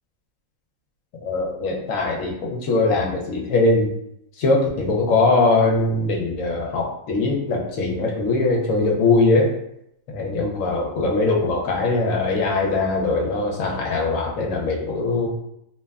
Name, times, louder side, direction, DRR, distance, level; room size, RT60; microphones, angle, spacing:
voice 1, 1.2-3.9 4.4-9.5 10.1-15.3, left 3 dB, 75° left, -1 dB, 1.0 m, -21 dB
2.9 x 2.2 x 2.2 m, 0.78 s
omnidirectional pair, 1.4 m